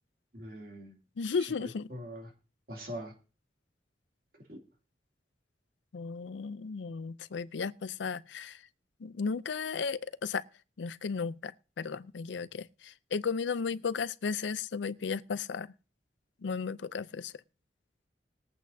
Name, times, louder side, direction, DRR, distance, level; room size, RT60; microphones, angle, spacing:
voice 1, 0.3-1.0 1.4-2.3 2.7-3.1 4.4-4.6, equal, 55° right, 2.6 m, -43 dB
voice 2, 1.2-1.9 5.9-8.6 9.0-10.4 10.8-15.7 16.4-17.3, left 5 dB, 85° left, 0.5 m, -34 dB
21.0 x 8.3 x 2.7 m
head